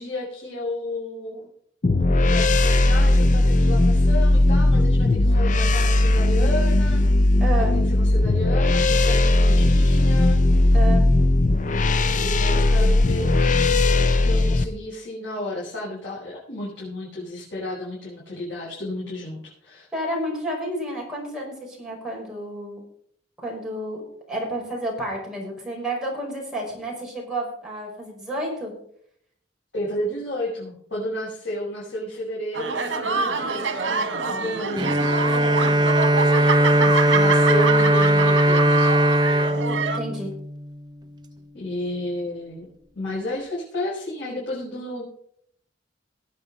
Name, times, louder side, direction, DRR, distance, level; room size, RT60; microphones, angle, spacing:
voice 1, 0.0-1.5 2.0-7.0 7.6-10.4 12.1-19.9 29.7-35.2 36.8-39.0 41.5-42.7 42.9-45.0, left 1 dB, 75° left, -7 dB, 5.4 m, -32 dB
sound 1, 1.8-14.6, left 2 dB, 40° left, 0.6 m, -18 dB
voice 2, 7.4-7.8 10.7-11.0 19.9-22.8 23.4-24.0 24.3-28.7 35.4-35.8 39.9-40.3, right 1 dB, 5° right, -3 dB, 5.3 m, -30 dB
sound 2, 32.5-40.0, right 4 dB, 80° right, 1.7 m, -26 dB
Bowed string instrument, 34.8-40.8, right 1 dB, 25° right, 0.7 m, -19 dB
18.5 x 8.6 x 4.1 m, 0.66 s
head